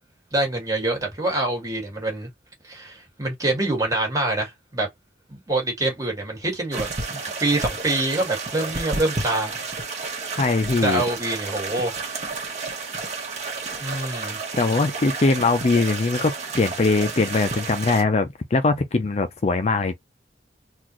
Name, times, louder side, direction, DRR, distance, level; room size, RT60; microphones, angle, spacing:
voice 1, 0.3-2.3 2.6-4.9 5.3-9.5 10.8-11.9 13.8-14.4, right 2 dB, 20° right, 1.7 m, -25 dB
sound 1, 6.7-18.0, right 4 dB, 40° right, 1.3 m, -31 dB
voice 2, 10.4-11.0 14.6-19.9, left 3 dB, 40° left, 0.5 m, -21 dB
4.0 x 2.5 x 3.0 m
head